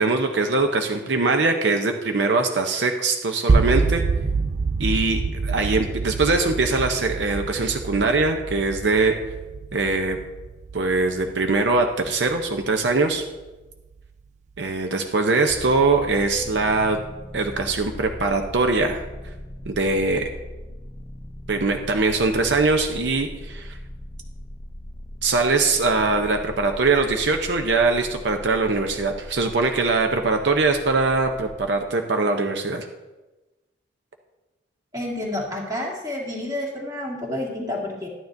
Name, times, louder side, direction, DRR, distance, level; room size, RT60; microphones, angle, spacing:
voice 1, 0.0-4.0 4.8-9.4 9.7-10.2 10.7-13.3 14.6-17.0 17.3-19.4 19.6-20.3 21.5-23.8 25.2-32.9, right 3 dB, 70° right, 4 dB, 0.7 m, -22 dB
sound 1, 3.5-13.5, right 4 dB, 40° right, 0.3 m, -26 dB
sound 2, 15.5-31.7, left 1 dB, 15° left, 0.5 m, -39 dB
voice 2, 34.9-38.1, left 1 dB, 20° right, -3 dB, 2.0 m, -29 dB
12.5 x 9.5 x 2.6 m, 1.1 s
head